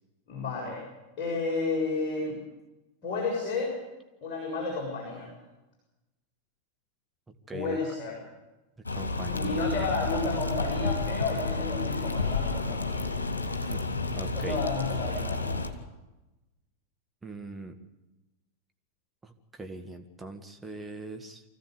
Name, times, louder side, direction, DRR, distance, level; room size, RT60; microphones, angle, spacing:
voice 1, 0.3-0.8 1.2-2.4 3.0-3.8 4.2-5.4 7.5-8.1 9.3-13.0 14.3-15.6, left 3 dB, 40° left, -3 dB, 7.2 m, -31 dB
voice 2, 7.3-7.8 8.9-9.7 13.6-13.9 14.1-14.6 17.2-17.8 19.2-21.4, right 2 dB, 10° right, 5 dB, 1.8 m, -41 dB
sound 1, 8.9-15.7, left 3 dB, 75° left, 2.2 m, -31 dB
25.0 x 15.5 x 8.3 m, 1.1 s
figure-of-eight pair, 90°, 0 cm